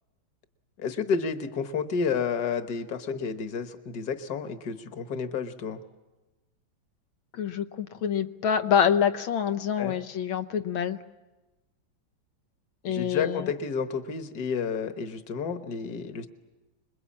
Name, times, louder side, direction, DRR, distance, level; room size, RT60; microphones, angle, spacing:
voice 1, 0.8-5.8 9.8-9.9 12.8-16.3, left 6 dB, 55° left, 8 dB, 1.7 m, -30 dB
voice 2, 7.3-11.0 12.8-13.5, left 8 dB, 85° left, 9 dB, 1.9 m, -26 dB
26.5 x 21.5 x 8.6 m, 1.1 s
omnidirectional pair, 2.2 m